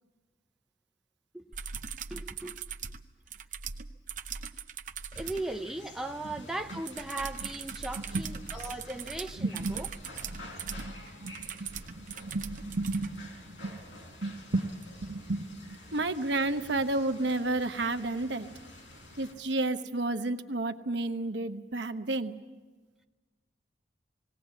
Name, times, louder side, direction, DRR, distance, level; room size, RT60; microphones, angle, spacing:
sound 1, 1.5-5.5 6.9-13.1 14.8-14.9, right 6 dB, 45° right, 0.7 m, -40 dB
voice 1, 2.1-2.6 5.1-9.9, right 2 dB, ahead, 4 dB, 0.6 m, -37 dB
sound 2, 5.1-19.3, left 2 dB, 90° left, 4.7 m, -50 dB
voice 2, 9.4-9.8 10.3-10.9 11.2-13.7 14.2-14.7 15.0-18.5 19.2-22.3, right 2 dB, 70° right, 8 dB, 1.0 m, -32 dB
19.5 x 17.5 x 8.3 m, 1.3 s
head